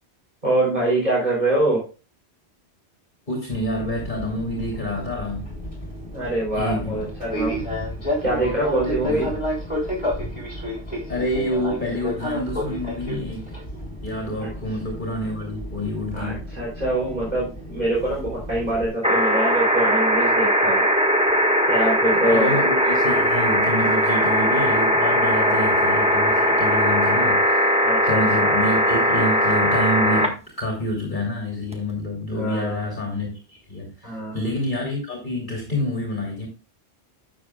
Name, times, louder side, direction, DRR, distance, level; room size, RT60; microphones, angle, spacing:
voice 1, 0.4-1.8 6.1-7.6 8.2-9.3 14.4-14.5 16.1-20.9 21.7-22.7 25.3-25.6 27.8-28.5 32.3-32.8 34.0-34.4, right 1 dB, 40° right, 3.6 m, -24 dB
voice 2, 3.3-5.5 6.5-7.1 9.0-9.4 11.1-13.5 14.0-16.4 22.3-36.5, left 1 dB, 45° left, 2.9 m, -28 dB
Fixed-wing aircraft airplane, 3.5-18.9, equal, 30° left, 3.8 m, -31 dB
sound 1, 19.0-30.3 31.7-31.8, equal, 5° right, 1.4 m, -19 dB
12.0 x 7.2 x 2.3 m
omnidirectional pair, 1.1 m